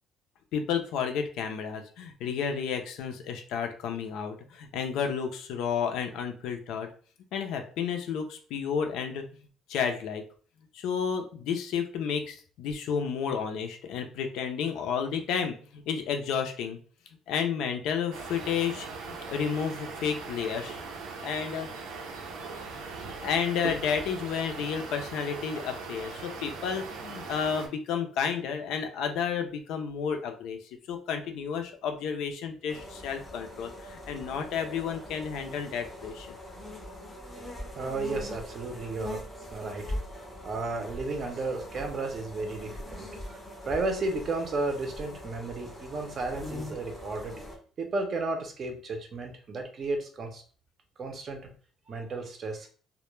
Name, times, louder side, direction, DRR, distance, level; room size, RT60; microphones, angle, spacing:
voice 1, 0.5-6.9 7.3-9.2 9.7-10.2 10.7-16.8 17.3-20.8 21.2-21.7 22.7-30.6 30.9-36.4, left 7 dB, 75° left, 5 dB, 0.4 m, -31 dB
sound 1, 18.1-27.7, right 4 dB, 85° right, 0.5 m, -40 dB
sound 2, 32.7-47.6, left 1 dB, 15° left, 0.5 m, -42 dB
voice 2, 37.7-39.2 39.5-39.9 40.4-43.4 43.7-47.3 47.8-50.4 51.0-51.5 51.9-52.7, right 3 dB, 35° right, 4 dB, 0.5 m, -33 dB
2.1 x 2.1 x 3.0 m, 0.42 s
cardioid pair, 155°, 0 cm